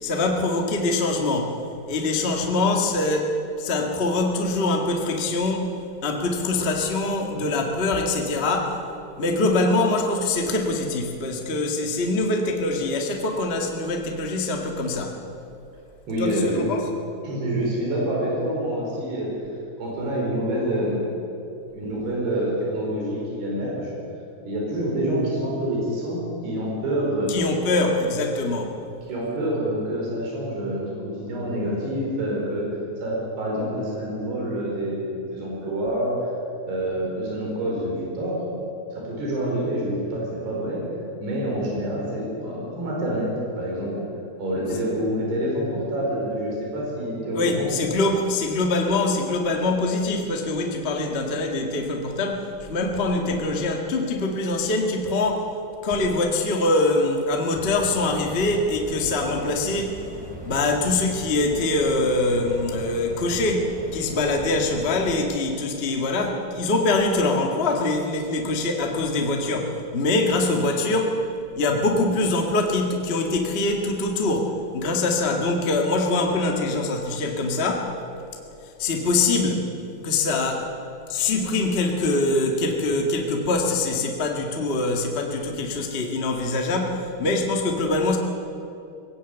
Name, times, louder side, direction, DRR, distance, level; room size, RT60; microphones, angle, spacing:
voice 1, 0.0-1.5 1.9-5.7 6.0-8.8 9.2-15.2 16.2-16.9 27.3-28.7 47.3-55.5 55.8-60.0 60.4-71.2 71.5-77.9 78.8-79.7 80.0-80.7 81.1-88.2, left 2 dB, 85° left, 2 dB, 0.5 m, -24 dB
voice 2, 16.1-16.7 17.2-19.3 19.8-21.2 21.7-23.9 24.4-27.3 29.1-32.6 33.0-36.1 36.7-38.4 38.9-40.8 41.2-44.0 44.4-47.8, right 1 dB, 80° right, -3 dB, 6.8 m, -27 dB
sound 1, 57.5-65.2, equal, ahead, 3.0 m, -39 dB
19.5 x 17.0 x 8.1 m, 2.7 s
omnidirectional pair, 4.6 m